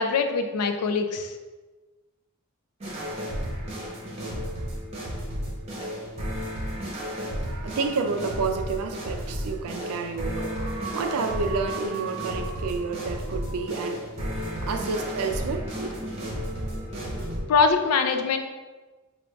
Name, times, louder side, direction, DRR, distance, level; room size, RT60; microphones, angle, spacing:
voice 1, 0.0-1.3 17.5-18.4, left 4 dB, 85° left, 0.4 m, -23 dB
sound 1, 2.8-17.4, equal, 30° right, 0.7 m, -33 dB
voice 2, 7.4-14.1 14.6-16.1, right 4 dB, 85° right, 0.4 m, -30 dB
5.0 x 2.4 x 2.3 m
head